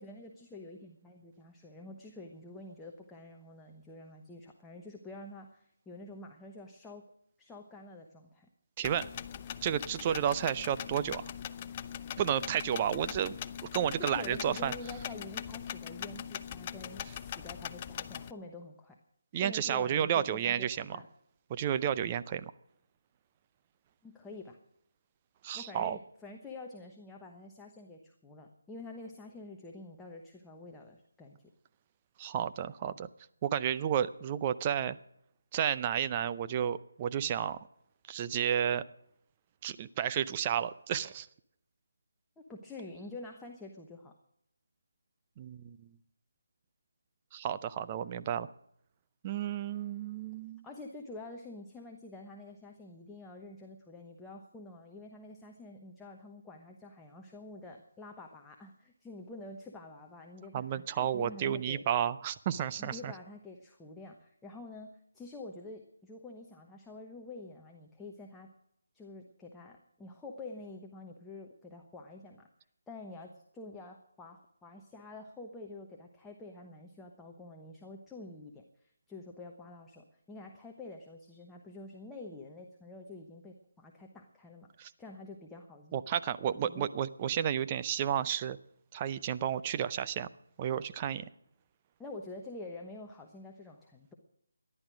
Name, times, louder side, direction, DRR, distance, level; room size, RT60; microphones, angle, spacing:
voice 1, 0.0-7.1 7.4-8.5 14.0-19.0 19.3-21.1 24.0-24.6 25.5-31.4 42.4-44.1 50.6-61.8 62.8-68.5 68.9-72.5 72.9-86.0 86.5-86.9 92.0-94.1, left 2 dB, 5° left, 0 dB, 1.0 m, -48 dB
sound 1, 8.8-18.3, left 9 dB, 25° left, 0.5 m, -41 dB
voice 2, 8.8-9.1 9.6-11.2 12.2-13.3 13.6-14.7 19.3-21.0 21.5-22.5 25.4-26.0 32.2-33.1 33.4-35.0 35.5-37.6 38.1-38.8 39.6-41.3 45.4-45.9 47.3-48.5 49.2-50.7 60.5-63.1 84.8-84.9 85.9-88.6 88.9-90.3 90.6-91.2, right 9 dB, 25° right, 13 dB, 0.6 m, -32 dB
14.0 x 11.0 x 6.2 m, 0.73 s
figure-of-eight pair, 160°, 0 cm